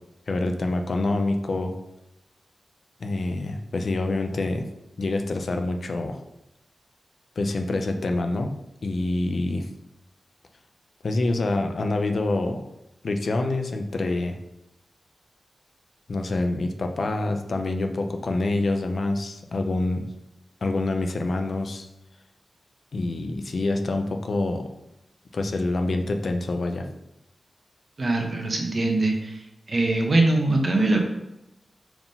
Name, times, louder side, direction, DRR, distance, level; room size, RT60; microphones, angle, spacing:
voice 1, 0.3-1.7 3.0-4.6 5.0-6.2 7.4-8.5 8.8-9.6 11.0-12.6 13.0-14.4 16.1-20.1 20.6-21.9 22.9-24.7 25.3-26.9, left 2 dB, 60° left, 5 dB, 0.6 m, -26 dB
voice 2, 28.0-29.4 29.7-31.0, right 2 dB, 45° right, 2 dB, 1.1 m, -22 dB
4.7 x 3.7 x 5.4 m, 0.90 s
wide cardioid pair, 90°, 0 cm